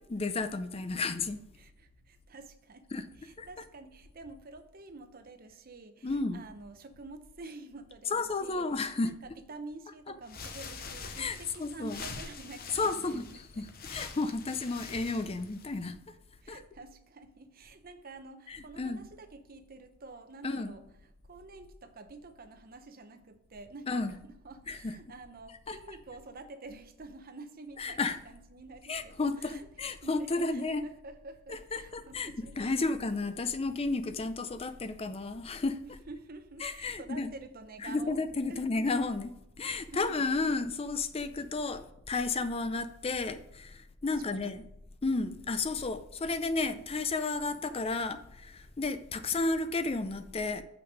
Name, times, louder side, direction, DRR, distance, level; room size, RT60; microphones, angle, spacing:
voice 1, 0.1-1.4 2.9-3.0 3.4-3.5 6.0-6.4 8.1-9.1 11.2-11.3 11.6-12.0 12.7-16.0 16.5-16.6 18.5-19.0 20.4-20.7 23.9-24.1 24.7-24.9 25.7-25.8 27.8-28.2 28.9-30.8 31.5-35.8 36.6-37.3 37.8-39.3 39.6-44.6 45.0-50.6, left 3 dB, 25° left, 11 dB, 0.4 m, -32 dB
voice 2, 1.6-13.7 16.4-20.8 21.2-29.7 30.0-32.9 35.8-38.2 38.5-38.9 39.9-40.0 44.1-44.5, right 3 dB, 40° right, 9 dB, 0.7 m, -49 dB
sound 1, 10.2-15.9, left 5 dB, 45° left, 0.8 m, -45 dB
7.1 x 6.0 x 5.0 m, 0.83 s
head